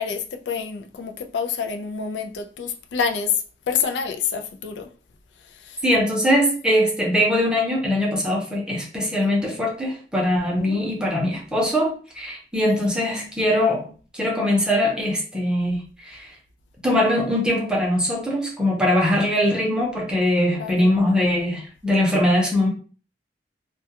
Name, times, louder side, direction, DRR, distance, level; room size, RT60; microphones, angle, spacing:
voice 1, 0.0-4.9 5.5-5.8 10.6-10.9 12.5-13.1 20.6-21.0, left 6 dB, 85° left, 5 dB, 0.4 m, -28 dB
voice 2, 5.8-15.8 16.0-16.3 16.8-22.7, left 1 dB, 5° right, -3 dB, 0.6 m, -21 dB
2.3 x 2.2 x 2.8 m, 0.38 s
head